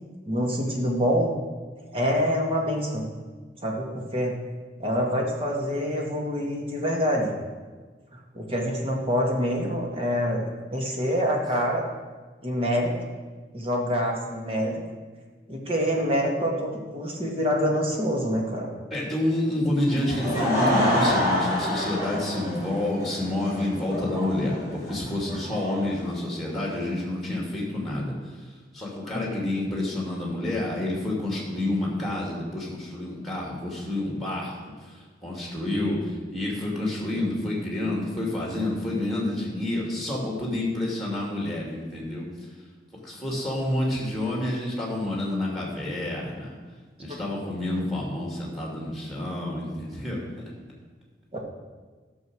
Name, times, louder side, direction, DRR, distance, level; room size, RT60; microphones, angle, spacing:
voice 1, 0.3-1.4 1.9-3.1 3.6-4.4 4.8-7.3 8.3-10.5 10.7-11.9 12.4-12.9 13.5-14.8 15.5-18.7 29.1-29.2 51.3-51.4, equal, 30° right, -1 dB, 1.9 m, -26 dB
voice 2, 18.9-42.5 43.0-46.6 47.0-50.3, left 1 dB, ahead, -2 dB, 2.7 m, -29 dB
Laughter / Crowd, 19.9-26.8, equal, 15° right, 3.2 m, -28 dB
13.5 x 6.5 x 6.4 m, 1.4 s
head